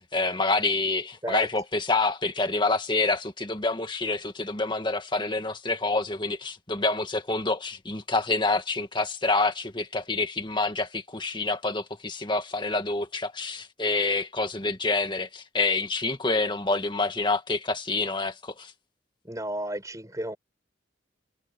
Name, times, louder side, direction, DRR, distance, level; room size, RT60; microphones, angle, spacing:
voice 1, 0.0-18.7, left 3 dB, 25° left, 1.9 m, -27 dB
voice 2, 19.2-20.4, right 1 dB, 20° right, 5.3 m, -32 dB
head